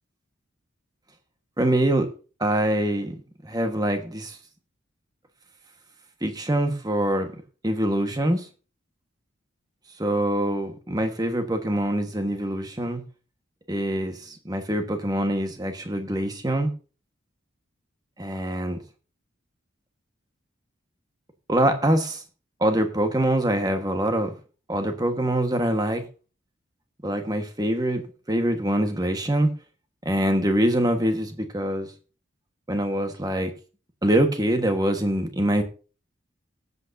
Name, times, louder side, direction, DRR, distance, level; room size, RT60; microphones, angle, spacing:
voice 1, 1.6-2.1 2.4-3.1 3.4-4.4 6.2-7.3 7.6-8.5 10.0-13.0 13.7-16.7 18.2-18.8 21.5-22.2 22.6-24.3 24.7-26.0 27.0-29.5 30.0-31.9 32.7-33.5 34.0-35.6, right 1 dB, 20° right, 6 dB, 1.4 m, -24 dB
19.5 x 8.2 x 2.7 m, 0.35 s
head